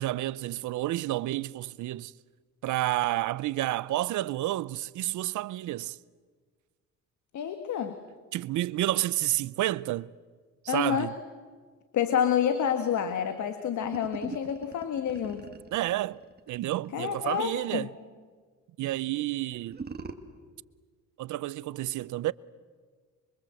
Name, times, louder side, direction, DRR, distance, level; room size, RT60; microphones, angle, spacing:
voice 1, 0.0-2.1 2.6-6.0 8.3-10.1 10.6-11.1 14.3-14.4 15.7-16.2 16.5-17.9 18.8-19.8 21.2-22.3, right 15 dB, 80° right, 0.7 m, -30 dB
voice 2, 7.3-8.0 10.7-11.1 11.9-15.5 16.9-17.9, left 8 dB, 70° left, 1.8 m, -28 dB
sound 1, 13.8-17.6 19.5-20.1, right 4 dB, 30° right, 2.1 m, -42 dB
27.0 x 24.5 x 7.8 m
cardioid pair, 90°, 30 cm